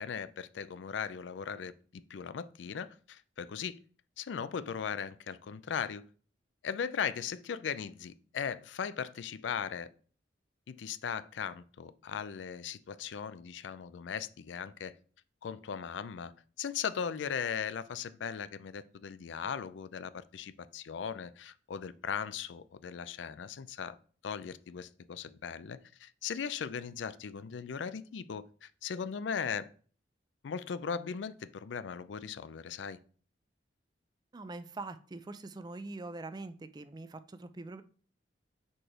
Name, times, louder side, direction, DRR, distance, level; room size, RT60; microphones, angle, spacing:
voice 1, 0.0-3.8 4.2-6.1 6.6-9.9 10.7-15.0 15.4-16.3 16.6-24.0 24.2-29.7 30.4-33.0, left 7 dB, 85° left, 0.4 m, -38 dB
voice 2, 34.3-37.8, right 2 dB, 25° right, 0.4 m, -43 dB
4.9 x 4.4 x 4.4 m
head